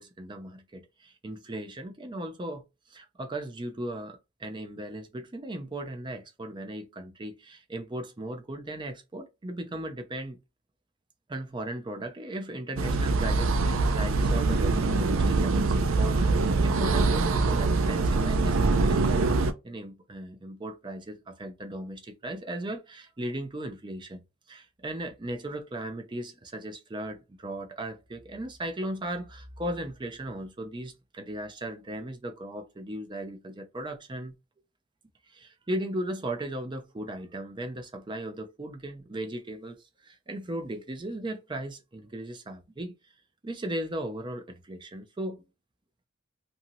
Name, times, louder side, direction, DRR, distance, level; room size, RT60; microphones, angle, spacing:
voice 1, 0.0-2.6 2.9-10.4 11.3-19.3 19.6-24.2 24.5-34.3 35.3-42.9 43.4-45.4, right 1 dB, 25° right, 0.5 m, -37 dB
sound 1, 12.8-19.5, right 3 dB, 75° right, 0.4 m, -24 dB
2.8 x 2.7 x 2.6 m
head